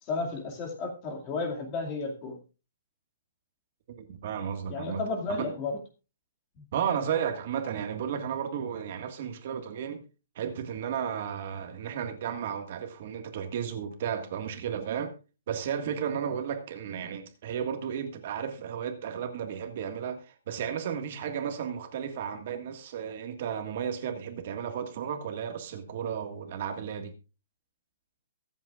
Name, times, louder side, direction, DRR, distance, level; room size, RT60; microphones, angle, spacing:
voice 1, 0.0-2.4 4.7-5.8 6.6-6.7, left 3 dB, 20° left, 2.2 m, -33 dB
voice 2, 4.0-5.0 5.3-5.5 6.7-10.0 10.3-15.1 15.5-27.1, right 8 dB, 40° right, 1.7 m, -33 dB
23.0 x 8.3 x 2.4 m
hypercardioid pair, 175°, 0 cm